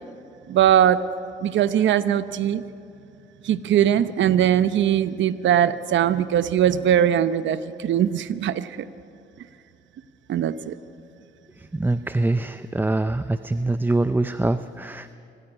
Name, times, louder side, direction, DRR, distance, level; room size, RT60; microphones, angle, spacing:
voice 1, 0.5-1.0 1.4-2.6 3.4-8.7 10.3-10.7, right 10 dB, 70° right, 13 dB, 0.9 m, -20 dB
voice 2, 11.7-15.1, right 2 dB, 10° right, 12 dB, 0.6 m, -24 dB
25.5 x 15.0 x 9.9 m, 2.5 s
cardioid pair, 90°, 20 cm